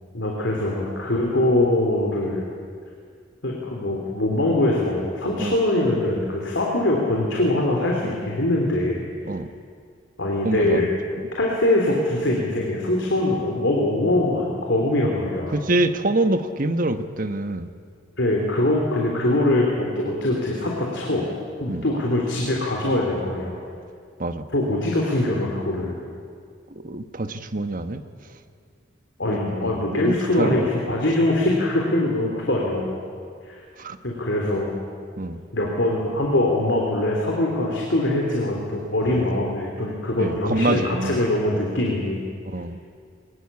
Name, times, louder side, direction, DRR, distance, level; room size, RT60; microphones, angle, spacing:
voice 1, 0.1-2.4 3.4-9.0 10.2-10.9 11.4-15.5 18.2-21.2 21.6-23.6 24.5-26.0 29.2-33.0 33.5-33.6 34.0-34.7 35.5-42.2, left 1 dB, 70° left, -1 dB, 3.5 m, -23 dB
voice 2, 10.4-10.9 11.2-11.3 15.5-17.7 21.7-21.8 24.2-24.4 26.8-28.0 29.6-30.7 33.8-34.0 35.2-35.4 39.0-39.2 40.2-41.2 42.5-42.8, right 2 dB, 45° right, 9 dB, 1.2 m, -25 dB
23.0 x 20.0 x 8.5 m, 2.1 s
head